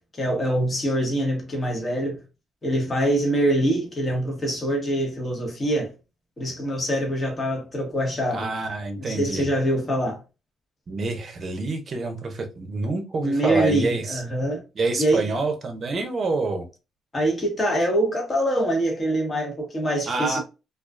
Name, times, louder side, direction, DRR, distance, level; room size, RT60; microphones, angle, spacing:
voice 1, 0.1-2.2 2.6-5.9 6.4-8.5 9.0-10.2 13.2-14.6 15.0-15.3 17.1-20.4, right 1 dB, 30° left, 1.1 m, -24 dB
voice 2, 8.3-9.5 10.9-14.2 14.8-16.7 20.1-20.4, right 3 dB, 50° right, 0.6 m, -27 dB
2.4 x 2.3 x 2.3 m
cardioid pair, 90°, 0 cm